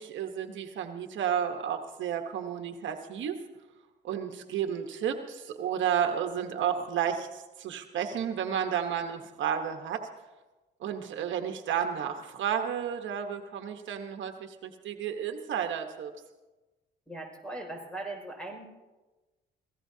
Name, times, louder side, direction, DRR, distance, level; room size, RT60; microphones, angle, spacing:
voice 1, 0.0-3.4 4.0-10.0 10.8-16.1, right 8 dB, 75° right, 5 dB, 1.2 m, -32 dB
voice 2, 17.1-18.7, right 2 dB, 5° left, 2 dB, 5.4 m, -39 dB
25.5 x 17.0 x 2.8 m, 1.1 s
cardioid pair, 90°, 20 cm